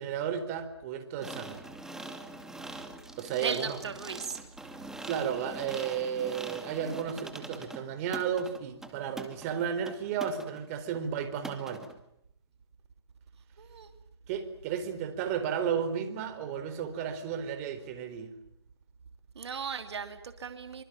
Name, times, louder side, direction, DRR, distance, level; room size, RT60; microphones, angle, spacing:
voice 1, 0.0-1.6 3.2-3.8 5.0-11.8 14.3-18.3, right 8 dB, 30° right, 8 dB, 4.3 m, -33 dB
sound 1, 1.2-10.7 10.9-11.0 11.4-11.9, right 2 dB, 5° right, 2.4 m, -44 dB
voice 2, 3.4-4.4 13.6-13.9 19.3-20.8, right 6 dB, 75° right, 8 dB, 2.8 m, -37 dB
25.5 x 25.0 x 9.0 m, 0.73 s
hypercardioid pair, 150°, 14 cm